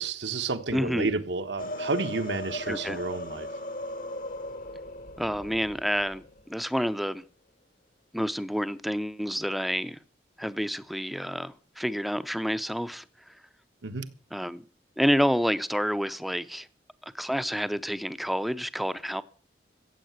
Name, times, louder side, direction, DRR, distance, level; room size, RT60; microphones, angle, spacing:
voice 1, 0.0-3.5 13.8-14.1, right 3 dB, 75° right, 1.3 m, -31 dB
voice 2, 0.7-1.1 2.7-3.0 5.2-7.3 8.1-10.0 10.4-13.4 14.3-14.6 15.0-16.7 17.1-19.2, equal, ahead, 0.6 m, -29 dB
sound 1, 1.6-6.4, left 1 dB, 50° left, 1.2 m, -37 dB
15.0 x 8.3 x 8.0 m
head